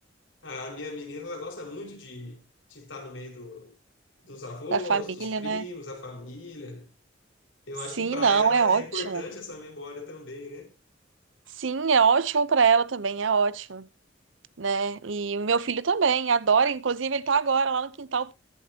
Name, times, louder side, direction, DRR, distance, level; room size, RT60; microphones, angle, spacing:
voice 1, 0.4-2.4 2.7-3.7 4.2-6.9 7.7-10.7, left 3 dB, 85° left, 5.4 m, -38 dB
voice 2, 4.7-5.6 8.0-9.2 11.6-13.9 14.6-18.3, right 5 dB, 80° right, 0.7 m, -24 dB
22.5 x 7.7 x 2.8 m
head